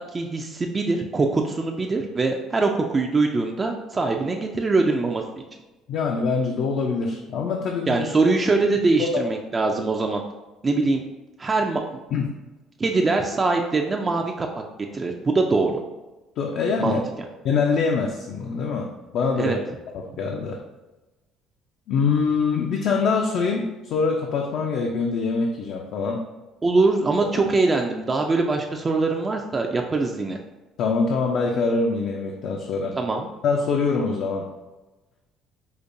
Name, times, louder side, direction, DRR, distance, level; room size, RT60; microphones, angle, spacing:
voice 1, 0.0-5.2 7.9-10.2 10.6-11.0 11.4-11.8 12.8-14.6 14.9-15.7 16.8-17.0 19.4-19.6 26.6-30.4 32.9-33.3, right 3 dB, 25° right, 2 dB, 0.3 m, -23 dB
voice 2, 5.9-8.1 9.0-9.3 12.1-12.2 16.4-17.0 17.4-19.6 19.9-20.6 21.9-26.2 30.8-33.0 33.4-34.5, left 4 dB, 65° left, 1 dB, 0.4 m, -24 dB
5.0 x 2.2 x 2.6 m, 1.1 s
cardioid pair, 110°, 0 cm